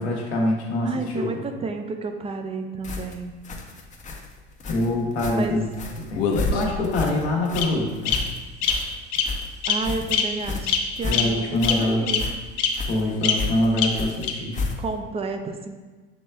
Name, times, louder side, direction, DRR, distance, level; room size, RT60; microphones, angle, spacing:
voice 1, 0.0-1.4 4.7-5.7 6.1-8.2 11.1-12.1 12.9-14.6, left 1 dB, 80° left, -3 dB, 1.1 m, -24 dB
voice 2, 0.8-3.3 5.4-5.6 9.7-11.4 11.7-12.3 14.8-15.7, right 3 dB, 20° right, 6 dB, 0.4 m, -31 dB
sound 1, 2.8-15.1, left 3 dB, 25° left, 0.6 m, -33 dB
Bird vocalization bird call bird song, 6.1-6.9 7.6-7.7 8.1-8.2 8.6-8.7 9.1-9.3 9.6-9.8 10.1-10.2 10.7-10.8 11.1-11.2 11.6-11.7 12.1-12.2 12.6-12.7 13.2-13.3 13.8-13.9 14.2-14.3, left 9 dB, 65° left, 0.7 m, -22 dB
6.9 x 3.1 x 2.2 m, 1.3 s
hypercardioid pair, 75°, 32 cm